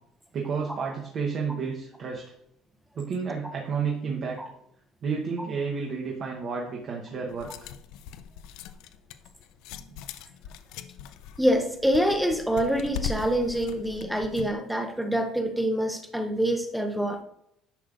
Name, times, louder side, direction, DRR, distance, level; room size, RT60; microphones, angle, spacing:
voice 1, 0.3-2.2 3.0-4.4 5.0-7.5, right 5 dB, 35° right, -1 dB, 0.9 m, -31 dB
sound 1, 7.3-14.5, left 8 dB, 70° left, 0.4 m, -40 dB
voice 2, 11.4-17.2, equal, ahead, 6 dB, 0.6 m, -26 dB
10.0 x 6.3 x 2.5 m, 0.75 s
cardioid pair, 175°, 0 cm